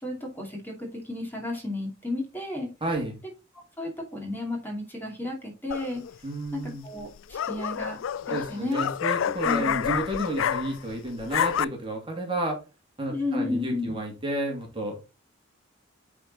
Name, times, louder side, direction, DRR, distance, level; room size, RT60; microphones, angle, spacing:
voice 1, 0.0-2.7 3.8-6.0 6.5-8.0 8.3-8.8 9.3-9.8 13.1-14.0, left 2 dB, 10° left, 2.5 m, -32 dB
voice 2, 2.8-3.2 6.2-6.9 8.3-12.6 13.0-15.0, right 1 dB, 25° right, 2.5 m, -31 dB
sound 1, 5.7-6.1 7.0-10.9 11.2-11.6, left 9 dB, 80° left, 0.4 m, -28 dB
9.9 x 4.4 x 4.0 m
head